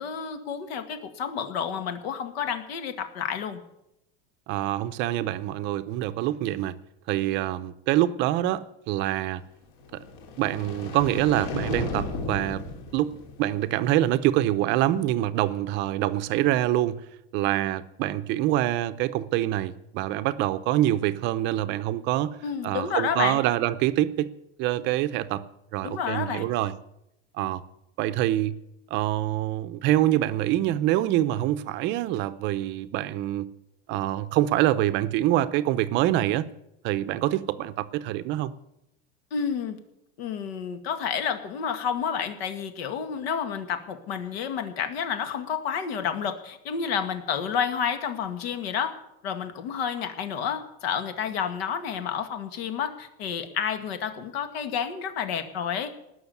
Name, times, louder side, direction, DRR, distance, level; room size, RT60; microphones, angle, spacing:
voice 1, 0.0-3.6 22.4-23.4 25.8-26.5 39.3-39.8 40.2-48.9 49.2-55.9, left 7 dB, 75° left, 2.0 m, -30 dB
voice 2, 4.5-6.8 7.1-9.4 9.9-10.0 10.4-12.6 12.9-13.1 13.4-17.0 17.3-22.4 22.6-24.3 24.6-25.4 25.7-26.7 27.4-27.6 28.0-28.6 28.9-33.5 33.9-36.5 36.8-38.5, right 14 dB, 35° right, 0.7 m, -25 dB
sound 1, 9.8-14.1, left 3 dB, 55° left, 3.0 m, -35 dB
19.0 x 6.4 x 9.6 m
supercardioid pair, 160°, 31 cm